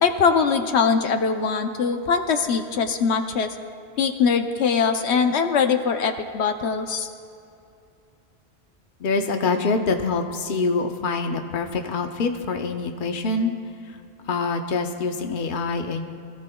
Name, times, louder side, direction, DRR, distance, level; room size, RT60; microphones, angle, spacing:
voice 1, 0.0-3.5 4.0-7.1, left 5 dB, 80° left, 6 dB, 1.0 m, -22 dB
voice 2, 9.0-13.5 14.3-16.0, left 4 dB, 50° left, 4 dB, 0.9 m, -25 dB
24.0 x 14.5 x 2.3 m, 2.6 s
omnidirectional pair, 1.1 m